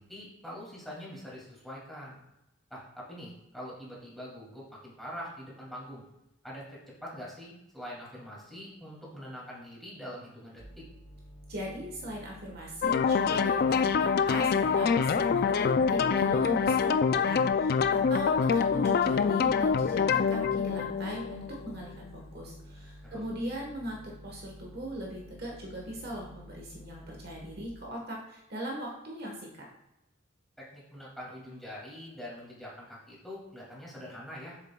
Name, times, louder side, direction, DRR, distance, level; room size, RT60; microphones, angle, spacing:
voice 1, 0.0-2.2 2.7-6.0 6.4-10.8 23.0-23.2 30.6-34.6, equal, ahead, -6 dB, 2.4 m, -44 dB
sound 1, 10.6-16.8 17.1-27.7, equal, 15° left, 2.3 m, -51 dB
voice 2, 11.5-29.6, equal, 50° right, -2 dB, 1.3 m, -40 dB
sound 2, 12.8-21.9, left 6 dB, 45° left, 0.3 m, -26 dB
7.4 x 7.2 x 2.3 m, 0.95 s
head